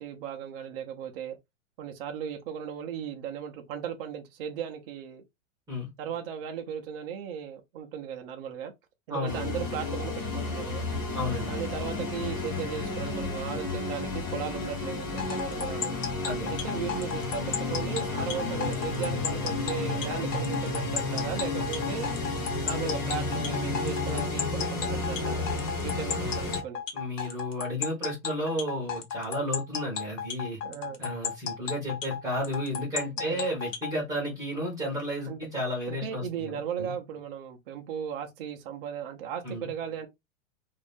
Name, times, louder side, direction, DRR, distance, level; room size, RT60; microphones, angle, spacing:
voice 1, 0.0-1.4 1.8-5.2 6.0-8.7 9.1-10.8 11.5-16.0 16.5-17.4 17.7-22.1 22.6-25.5 25.8-26.8 30.6-31.0 33.2-33.5 35.3-35.4 35.9-40.1, right 8 dB, 45° right, 0.6 m, -36 dB
voice 2, 9.1-9.6 11.1-11.5 16.2-16.6 26.1-26.4 26.9-30.6 31.0-36.9 39.4-39.7, equal, 10° right, 0.8 m, -33 dB
sound 1, 9.3-26.6, left 3 dB, 15° left, 0.4 m, -32 dB
sound 2, 15.2-33.9, left 7 dB, 65° left, 1.1 m, -34 dB
2.7 x 2.4 x 3.4 m
supercardioid pair, 160°, 40 cm